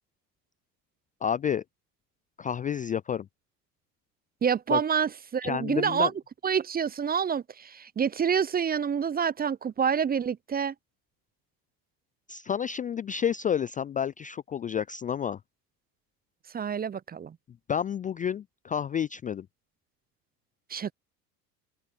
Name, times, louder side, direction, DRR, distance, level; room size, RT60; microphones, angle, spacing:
voice 1, 1.2-1.6 2.4-3.3 4.7-4.8 5.4-6.1 12.3-15.4 17.7-19.5, left 8 dB, 20° left, 0.4 m, -30 dB
voice 2, 4.4-6.1 6.4-10.7 16.5-17.4 20.7-20.9, right 7 dB, 20° right, 0.7 m, -27 dB
open air
hypercardioid pair, 70°, 49 cm